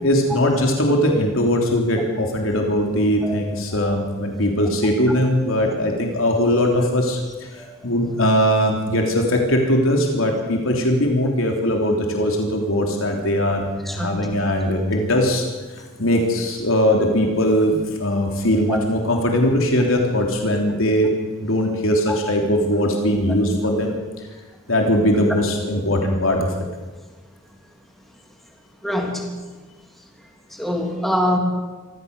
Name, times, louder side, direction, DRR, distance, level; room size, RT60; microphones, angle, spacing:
voice 1, 0.0-7.2 7.8-13.7 13.9-15.5 16.0-21.1 21.4-23.9 24.7-26.5, equal, 75° left, 1 dB, 3.4 m, -20 dB
voice 2, 13.8-14.3 18.7-18.8 28.8-29.3 30.5-31.4, left 1 dB, ahead, 1 dB, 3.1 m, -24 dB
25.5 x 15.0 x 6.7 m, 1.3 s
head